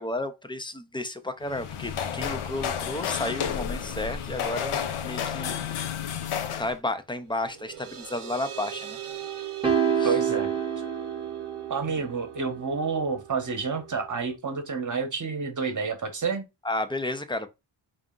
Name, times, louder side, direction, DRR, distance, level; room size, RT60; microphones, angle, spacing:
voice 1, 0.0-5.5 6.6-9.0 10.0-10.2 11.8-12.0 16.6-17.5, left 2 dB, 10° left, 0.4 m, -32 dB
sound 1, 1.4-6.8, left 8 dB, 80° left, 0.7 m, -31 dB
sound 2, 7.2-14.4, right 12 dB, 90° right, 0.7 m, -40 dB
sound 3, 9.6-12.1, right 7 dB, 10° right, 0.9 m, -27 dB
voice 2, 10.0-10.5 11.7-16.4, right 5 dB, 40° right, 1.0 m, -29 dB
4.1 x 2.5 x 3.7 m
wide cardioid pair, 90°, 49 cm